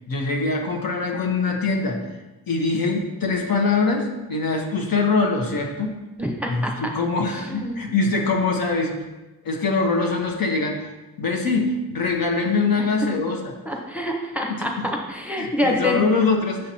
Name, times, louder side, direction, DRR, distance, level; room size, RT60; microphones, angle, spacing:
voice 1, 0.1-2.0 2.5-6.0 6.5-8.9 9.4-10.9 11.2-13.5 14.5-14.9 15.4-16.7, left 3 dB, 75° left, 1 dB, 1.1 m, -23 dB
voice 2, 6.2-6.7 7.5-7.7 12.8-12.9 13.7-16.0, left 1 dB, 5° right, 0 dB, 0.8 m, -26 dB
6.6 x 5.8 x 2.8 m, 1.1 s
wide cardioid pair, 90°, 35 cm